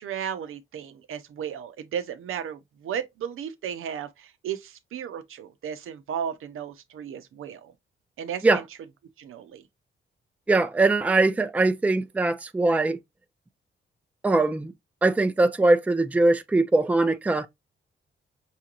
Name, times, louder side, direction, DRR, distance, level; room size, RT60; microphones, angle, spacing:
voice 1, 0.0-7.7 8.2-8.5 9.2-9.6, right 8 dB, 80° right, 0.7 m, -34 dB
voice 2, 10.5-13.0 14.2-14.7 15.0-17.5, right 2 dB, 5° right, 0.4 m, -21 dB
5.6 x 2.5 x 2.9 m
cardioid pair, 95°, 21 cm